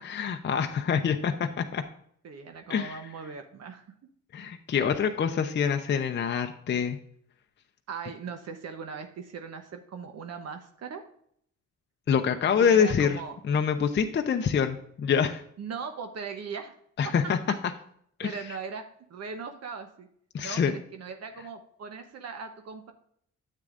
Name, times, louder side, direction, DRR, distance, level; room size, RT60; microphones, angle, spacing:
voice 1, 0.0-1.8 2.7-3.0 4.3-7.0 12.1-13.2 13.5-15.4 17.0-17.4 18.2-18.3 20.3-20.7, left 7 dB, 35° left, 5 dB, 0.6 m, -25 dB
voice 2, 2.2-3.9 7.9-11.0 12.6-13.4 15.6-16.7 17.0-17.6 18.2-18.8 19.1-20.1 20.4-22.9, right 5 dB, 55° right, 6 dB, 0.9 m, -39 dB
9.5 x 7.6 x 2.5 m, 0.66 s
cardioid pair, 90°, 30 cm